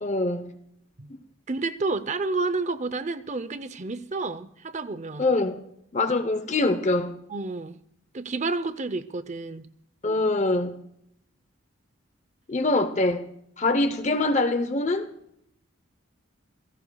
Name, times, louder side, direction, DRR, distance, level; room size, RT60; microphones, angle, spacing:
voice 1, 0.0-0.5 5.2-5.6 5.9-7.2 10.0-10.8 12.5-13.3 13.6-15.1, left 2 dB, 35° left, 0.8 m, -24 dB
voice 2, 1.5-5.3 7.3-7.8 8.1-9.7, right 3 dB, 35° right, 0.6 m, -30 dB
28.0 x 17.0 x 2.3 m
head